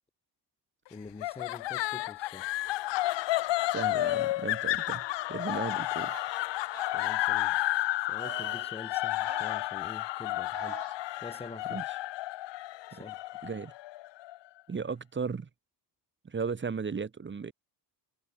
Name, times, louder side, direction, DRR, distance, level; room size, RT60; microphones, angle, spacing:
voice 1, 0.9-2.5 6.9-7.6 8.0-10.8 11.2-11.8 12.9-13.2, left 3 dB, 15° left, 0.7 m, -46 dB
sound 1, 1.2-14.4, left 17 dB, 80° left, 0.6 m, -31 dB
voice 2, 3.7-6.4 11.7-11.8 12.9-13.0 13.4-13.7 14.7-15.5 16.2-17.5, right 5 dB, 25° right, 1.4 m, -36 dB
sound 2, 5.9-6.3 6.7-7.5 8.2-8.7 9.1-9.6 10.5-11.0, right 14 dB, 75° right, 1.2 m, -47 dB
cardioid pair, 145°, 43 cm